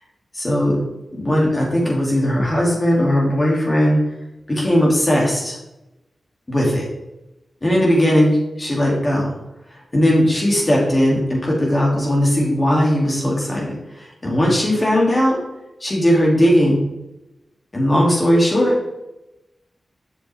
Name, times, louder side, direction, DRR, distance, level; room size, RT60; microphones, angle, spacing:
voice 1, 0.3-0.8 1.1-4.0 4.5-5.6 6.5-6.9 7.6-9.3 9.9-15.4 15.8-16.8 17.7-18.8, equal, 30° left, -3 dB, 2.8 m, -18 dB
8.2 x 6.8 x 3.6 m, 0.94 s
wide cardioid pair, 90°, 0 cm